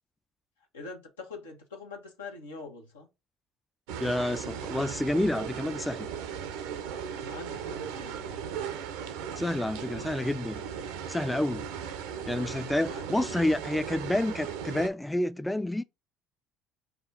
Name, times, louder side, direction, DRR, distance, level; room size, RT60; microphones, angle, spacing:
voice 1, 0.7-3.1 7.1-8.5 12.8-13.5, left 3 dB, 85° left, 1.0 m, -44 dB
sound 1, 3.9-14.9, right 8 dB, 75° right, 0.6 m, -37 dB
voice 2, 4.0-6.1 9.4-10.6 11.1-11.7 12.3-15.8, left 1 dB, 10° left, 0.3 m, -29 dB
4.9 x 2.4 x 3.8 m
hypercardioid pair, 60°, 0 cm